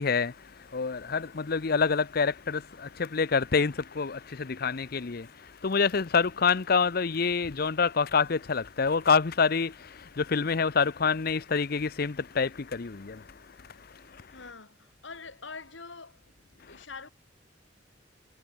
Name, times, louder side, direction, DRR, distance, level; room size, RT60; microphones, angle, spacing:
voice 1, 0.0-14.4 16.7-16.8, left 5 dB, 55° left, 0.7 m, -27 dB
voice 2, 14.3-16.2 16.7-17.1, left 4 dB, 85° left, 2.7 m, -44 dB
head